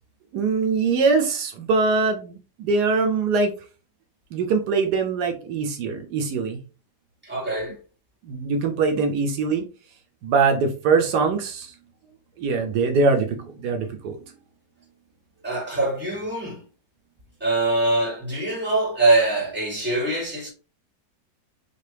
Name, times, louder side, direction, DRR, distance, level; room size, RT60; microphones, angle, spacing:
voice 1, 0.3-3.5 4.3-6.6 8.2-9.6 10.2-11.7 12.4-14.2, right 4 dB, 80° right, 1.2 m, -22 dB
voice 2, 7.2-7.8 15.4-16.6 17.4-20.5, right 2 dB, 5° right, 1.7 m, -23 dB
4.4 x 2.8 x 3.3 m
omnidirectional pair, 1.8 m